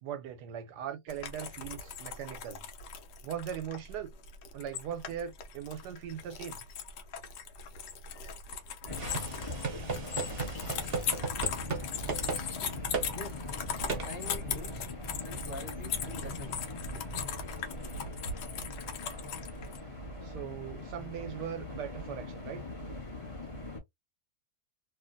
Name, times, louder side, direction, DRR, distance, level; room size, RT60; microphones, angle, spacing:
voice 1, 0.0-2.6 3.2-4.1 4.5-6.6 20.2-22.6, right 9 dB, 90° right, 1.2 m, -40 dB
sound 1, 1.1-19.8, left 7 dB, 85° left, 1.3 m, -39 dB
sound 2, 8.8-23.8, left 1 dB, 25° left, 1.0 m, -41 dB
sound 3, 8.9-11.8 12.1-12.4 12.9-13.1 13.9-14.1, right 4 dB, 45° right, 0.9 m, -35 dB
voice 2, 14.0-14.9 15.2-16.7, left 1 dB, 50° left, 1.2 m, -45 dB
3.1 x 2.5 x 2.5 m
omnidirectional pair, 1.7 m